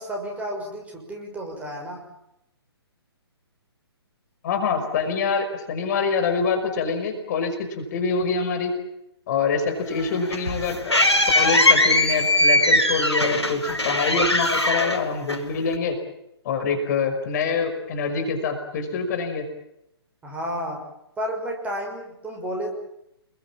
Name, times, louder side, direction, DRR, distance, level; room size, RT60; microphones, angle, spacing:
voice 1, 0.0-2.1 20.2-20.9 21.2-22.7, equal, 10° right, 1 dB, 6.1 m, -31 dB
voice 2, 4.4-8.7 9.3-10.9 11.3-16.0 16.4-19.5, left 5 dB, 40° left, 6 dB, 5.6 m, -25 dB
sound 1, 9.9-15.7, left 1 dB, 90° left, 5.3 m, -20 dB
29.0 x 22.0 x 7.5 m, 0.82 s
figure-of-eight pair, 130°, 14 cm